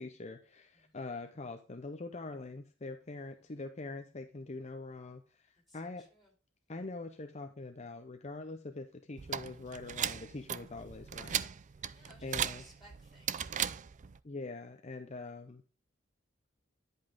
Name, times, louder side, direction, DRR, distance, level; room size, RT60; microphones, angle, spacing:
voice 1, 0.0-6.1 6.7-11.5 12.2-12.6 14.2-15.6, left 3 dB, 35° left, 5 dB, 0.7 m, -44 dB
voice 2, 0.7-1.2 3.1-3.6 5.5-6.3 11.8-13.9, equal, ahead, -3 dB, 4.9 m, -63 dB
sound 1, 9.2-14.2, right 9 dB, 40° right, 0.4 m, -37 dB
11.0 x 5.5 x 3.8 m, 0.37 s
head